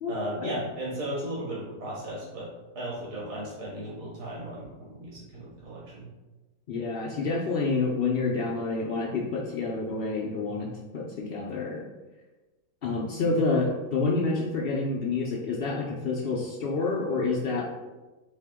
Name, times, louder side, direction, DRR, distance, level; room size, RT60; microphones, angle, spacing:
voice 1, 0.1-2.5 2.7-6.1, right 1 dB, 50° right, -7 dB, 1.7 m, -35 dB
voice 2, 6.7-11.9 12.8-17.6, left 3 dB, 75° left, -3 dB, 0.5 m, -28 dB
4.4 x 2.8 x 3.4 m, 1.2 s
omnidirectional pair, 1.6 m